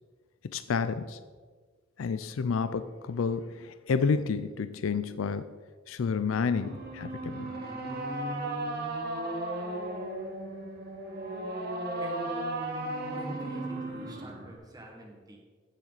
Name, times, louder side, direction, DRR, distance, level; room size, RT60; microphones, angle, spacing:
voice 1, 0.4-1.2 2.0-5.5 5.9-7.5, left 5 dB, 75° left, 12 dB, 0.4 m, -30 dB
sound 1, 6.6-14.6, right 1 dB, 50° right, 1.7 m, -35 dB
voice 2, 12.0-12.3 13.1-15.4, right 1 dB, 20° right, 0 dB, 1.7 m, -47 dB
15.0 x 7.2 x 4.0 m, 1.5 s
head